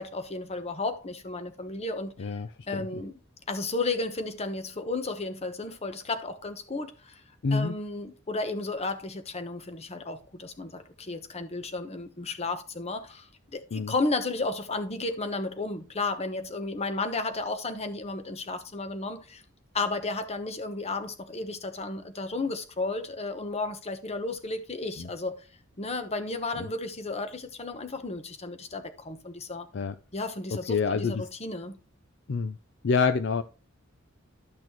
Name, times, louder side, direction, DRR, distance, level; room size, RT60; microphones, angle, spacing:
voice 1, 0.0-2.4 2.7-3.1 3.5-7.2 7.5-19.4 19.7-25.5 25.8-29.7 30.1-31.8, left 3 dB, 30° left, 1.0 m, -33 dB
voice 2, 7.4-7.7 13.7-13.9 25.0-25.1 29.7-29.9 30.7-31.1 32.3-32.6 32.8-33.4, left 5 dB, 60° left, 0.5 m, -26 dB
12.0 x 6.1 x 3.0 m
head